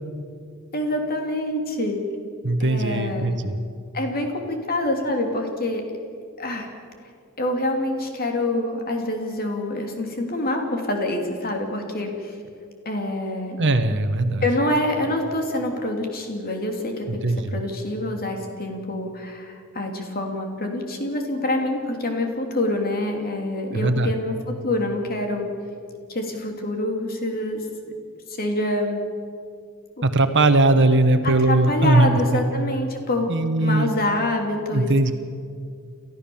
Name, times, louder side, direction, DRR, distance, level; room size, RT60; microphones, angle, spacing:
voice 1, 0.7-2.0 2.6-3.3 3.9-5.8 6.4-6.7 7.4-12.3 12.8-13.6 14.4-17.2 17.5-24.3 24.6-25.5 26.1-27.7 28.4-29.0 30.0-30.1 31.2-33.3 33.6-34.9, left 1 dB, 45° left, 3 dB, 3.1 m, -26 dB
voice 2, 2.4-3.6 13.6-14.4 17.1-17.6 23.7-24.1 30.0-32.4 33.3-33.9 34.7-35.1, right 2 dB, 55° right, 9 dB, 1.3 m, -19 dB
29.0 x 14.0 x 7.2 m, 2.3 s
head